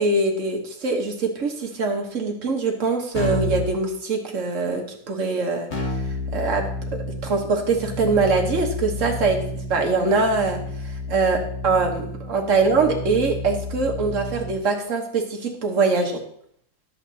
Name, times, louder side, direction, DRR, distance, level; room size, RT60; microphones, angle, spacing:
voice 1, 0.0-6.0 6.3-10.6 11.1-16.2, right 3 dB, 40° right, 2 dB, 1.5 m, -23 dB
Keyboard (musical), 3.1-3.7 5.7-14.6, left 1 dB, 45° left, 2.7 m, -30 dB
11.0 x 7.4 x 4.1 m, 0.67 s
omnidirectional pair, 2.2 m